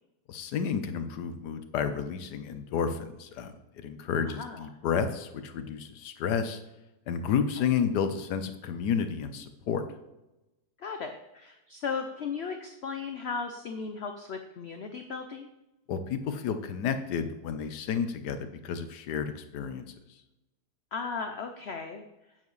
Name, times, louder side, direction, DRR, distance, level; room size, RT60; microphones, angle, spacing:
voice 1, 0.3-6.6 7.1-9.8 15.9-19.8, left 7 dB, 90° left, 9 dB, 1.4 m, -31 dB
voice 2, 4.3-4.6 10.8-15.5 20.9-22.0, left 5 dB, 60° left, 6 dB, 0.7 m, -36 dB
8.8 x 7.7 x 3.2 m, 0.98 s
omnidirectional pair, 1.7 m